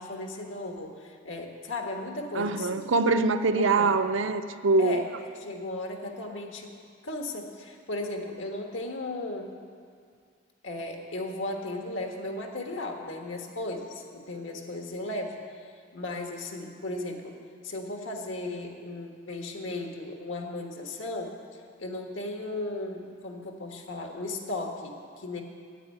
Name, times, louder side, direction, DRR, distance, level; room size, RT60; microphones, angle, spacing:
voice 1, 0.0-2.8 3.5-3.9 4.8-5.1 5.4-6.7 7.0-9.6 10.6-15.4 15.9-17.4 17.6-21.3 21.8-25.4, left 2 dB, 85° left, 2 dB, 1.5 m, -36 dB
voice 2, 2.3-5.1, right 3 dB, 85° right, 8 dB, 0.6 m, -24 dB
10.0 x 8.8 x 9.4 m, 2.1 s
head